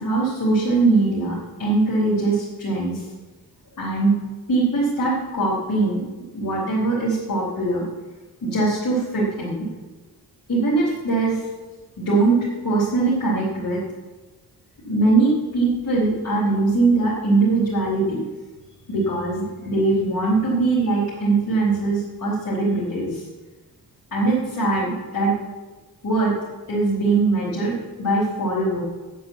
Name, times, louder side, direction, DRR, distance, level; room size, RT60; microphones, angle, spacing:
voice 1, 0.0-3.0 3.8-4.2 4.5-6.0 6.3-7.8 8.4-9.7 10.5-11.4 12.0-13.8 14.8-18.2 18.9-23.2 24.1-25.3 26.0-26.3 26.7-28.8, right 3 dB, 60° left, -7 dB, 4.1 m, -21 dB
9.4 x 8.6 x 8.4 m, 1.2 s
wide cardioid pair, 120°, 37 cm